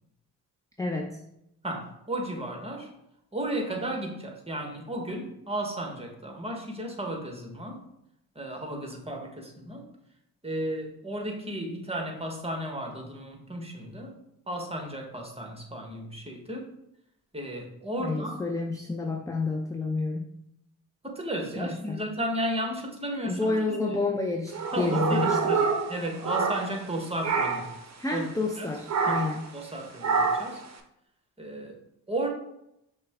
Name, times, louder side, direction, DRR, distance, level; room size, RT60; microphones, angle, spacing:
voice 1, 0.8-1.2 18.0-20.3 21.6-22.0 23.2-25.4 28.0-29.5, left 3 dB, 10° left, 2 dB, 0.4 m, -29 dB
voice 2, 1.6-2.9 3.3-7.8 8.3-9.9 10.4-14.2 14.5-16.7 17.3-18.5 21.0-24.0 24.7-27.7 28.1-28.3 28.6-28.7 29.1-29.2 29.5-30.6 31.4-31.8 32.1-32.3, right 1 dB, 15° right, 2 dB, 1.3 m, -34 dB
sound 1, 24.5-26.9 27.2-27.8 28.9-29.4 30.0-30.6, right 5 dB, 40° right, 0.7 m, -27 dB
5.7 x 2.3 x 3.6 m, 0.80 s
supercardioid pair, 50°, 43 cm